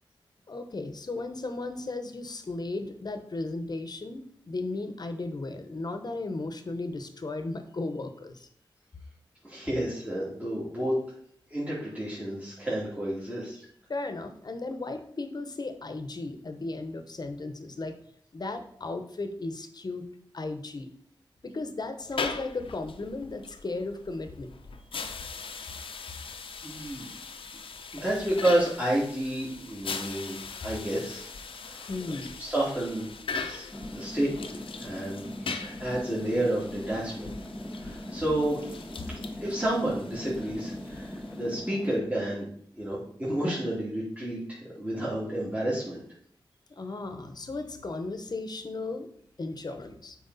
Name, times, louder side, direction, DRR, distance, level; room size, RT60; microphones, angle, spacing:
voice 1, 0.5-8.5 13.9-18.0 18.3-20.0 20.3-20.9 21.4-24.5 27.5-27.6 31.9-32.4 46.8-49.1 49.4-50.2, left 2 dB, 50° left, 8 dB, 1.0 m, -35 dB
voice 2, 9.4-10.9 11.5-13.7 26.6-27.2 27.9-30.4 30.6-31.3 31.6-33.1 33.4-37.3 37.7-38.9 39.4-42.5 42.8-46.0, right 1 dB, 15° right, -8 dB, 2.7 m, -30 dB
sound 1, 22.0-41.6, left 4 dB, 90° left, 0.7 m, -40 dB
sound 2, 33.7-42.0, left 1 dB, ahead, 0.8 m, -40 dB
8.1 x 4.7 x 4.1 m, 0.64 s
wide cardioid pair, 65°, 9 cm